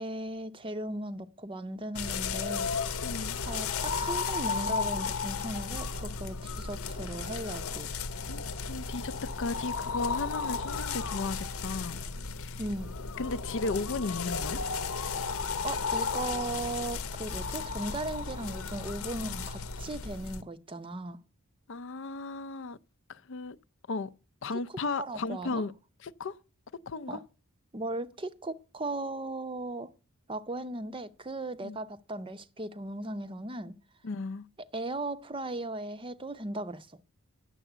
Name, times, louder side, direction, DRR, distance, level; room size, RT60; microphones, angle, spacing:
voice 1, 0.0-3.0 3.4-7.9 12.6-12.9 15.6-21.2 25.0-25.6 27.1-27.2 27.7-29.9 30.3-33.7 34.6-37.0, right 2 dB, 25° right, 0.6 m, -37 dB
sound 1, 1.9-20.4, left 5 dB, 75° left, 0.9 m, -34 dB
voice 2, 3.0-3.4 8.3-8.4 8.7-12.0 12.4-12.6 13.2-14.6 21.7-22.8 23.1-23.6 23.9-24.1 24.4-25.7 26.0-26.4 26.9-27.2 31.6-31.8 34.0-34.5, left 3 dB, 60° left, 0.5 m, -35 dB
10.0 x 7.4 x 7.9 m
head